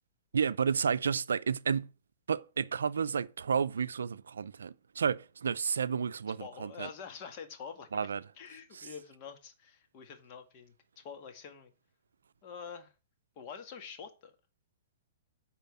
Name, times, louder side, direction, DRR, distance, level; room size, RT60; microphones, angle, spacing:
voice 1, 0.3-1.9 2.3-6.9 7.9-8.2 8.7-8.9, right 6 dB, 85° right, 0.4 m, -31 dB
voice 2, 6.4-8.1 8.4-11.7 12.4-12.9 13.4-14.4, left 6 dB, 45° left, 2.0 m, -46 dB
9.3 x 4.3 x 7.2 m
hypercardioid pair, 130°, 0 cm